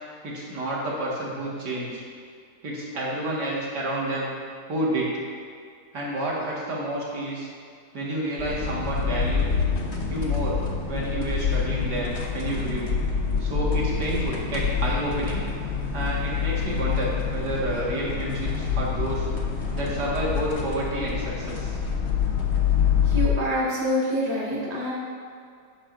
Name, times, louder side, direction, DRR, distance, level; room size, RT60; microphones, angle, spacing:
voice 1, 0.2-2.0 2.6-4.3 4.7-5.1 5.9-7.5 7.9-9.5 10.1-10.6 10.9-12.9 13.4-15.5 15.9-19.3 19.7-21.8, right 1 dB, 55° right, -5 dB, 2.3 m, -29 dB
sound 1, 8.4-23.3, left 6 dB, 45° left, 0.9 m, -26 dB
voice 2, 23.1-24.9, equal, 20° right, -6 dB, 1.8 m, -26 dB
11.0 x 9.0 x 2.6 m, 2.3 s
omnidirectional pair, 2.2 m